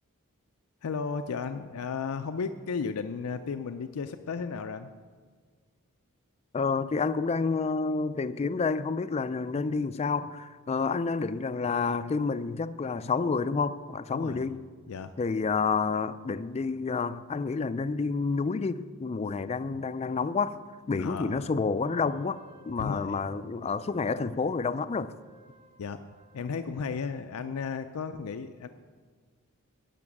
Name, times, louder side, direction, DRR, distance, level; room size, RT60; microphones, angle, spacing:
voice 1, 0.8-4.9 14.1-14.5 14.9-15.1 21.0-21.5 22.8-23.2 25.8-26.0 26.3-28.7, left 5 dB, 85° left, 0.5 m, -34 dB
voice 2, 6.5-14.6 15.2-20.6 20.9-22.4 22.7-25.1, left 4 dB, 30° left, 0.4 m, -29 dB
Wind instrument woodwind instrument, 21.7-27.3, right 5 dB, 30° right, 0.8 m, -56 dB
11.0 x 6.1 x 8.5 m
head